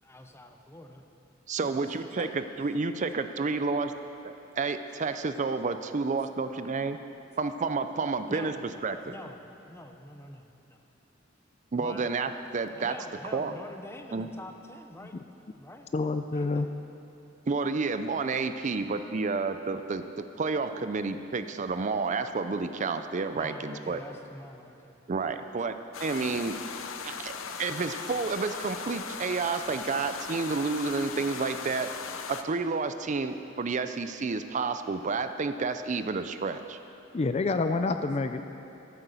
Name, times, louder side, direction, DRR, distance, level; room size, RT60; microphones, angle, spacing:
voice 1, 0.0-1.0 1.9-2.3 8.3-8.6 9.1-10.8 11.8-12.1 12.7-15.2 15.5-15.9 16.3-16.7 23.4-25.0 25.3-25.4, left 1 dB, 15° left, 5 dB, 0.8 m, -45 dB
voice 2, 1.5-3.9 4.2-7.0 7.4-8.5 8.8-9.0 11.7-12.9 13.3-13.5 14.1-14.3 17.5-24.0 25.1-26.6 27.0-31.9 32.3-36.8, right 4 dB, 40° right, 10 dB, 0.5 m, -30 dB
voice 3, 15.9-16.7 37.1-38.4, left 3 dB, 35° left, 8 dB, 0.4 m, -28 dB
sound 1, 25.9-32.4, left 6 dB, 85° left, 0.7 m, -38 dB
14.0 x 8.9 x 6.9 m, 2.8 s
head